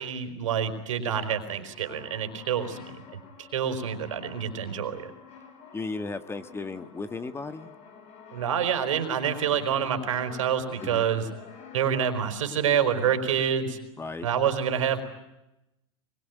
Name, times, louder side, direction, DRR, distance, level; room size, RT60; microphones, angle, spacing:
voice 1, 0.0-3.0 3.4-5.1 8.3-11.3 11.7-13.8 14.2-15.0, right 8 dB, 85° right, 9 dB, 4.5 m, -27 dB
Brass instrument, 1.6-12.4, left 5 dB, 40° left, 7.1 m, -48 dB
voice 2, 5.7-7.7 10.8-11.0 14.0-14.3, left 3 dB, 15° left, 11 dB, 1.7 m, -35 dB
24.5 x 23.0 x 9.4 m, 0.92 s
hypercardioid pair, 110°, 16 cm